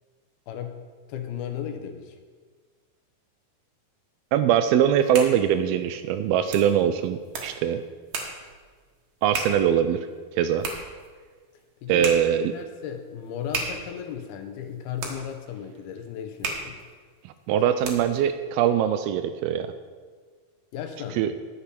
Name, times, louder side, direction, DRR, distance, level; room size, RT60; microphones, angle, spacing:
voice 1, 0.5-0.8 1.1-2.2 11.8-16.8 20.7-21.4, left 8 dB, 75° left, 6 dB, 2.7 m, -35 dB
voice 2, 4.3-7.8 9.2-10.1 10.3-10.7 11.9-12.5 17.3-19.7 21.2-21.3, right 9 dB, 80° right, 10 dB, 2.3 m, -22 dB
sound 1, 4.8-18.3, right 4 dB, 60° right, 2.8 m, -37 dB
10.0 x 8.2 x 6.8 m, 1.5 s
omnidirectional pair, 4.6 m